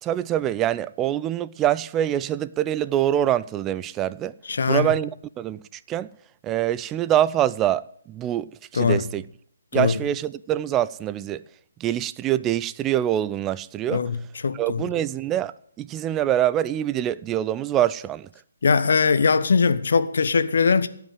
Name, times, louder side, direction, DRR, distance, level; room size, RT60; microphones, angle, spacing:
voice 1, 0.0-4.3 4.7-5.1 5.4-5.6 5.9-6.1 6.4-9.2 9.7-11.4 11.8-14.0 14.5-15.5 15.8-18.3, right 12 dB, 15° right, 0.4 m, -24 dB
voice 2, 4.5-4.9 8.7-9.0 9.7-10.0 13.9-14.9 18.6-20.9, left 5 dB, 60° left, 1.0 m, -21 dB
17.0 x 5.8 x 9.2 m
figure-of-eight pair, 140°, 0 cm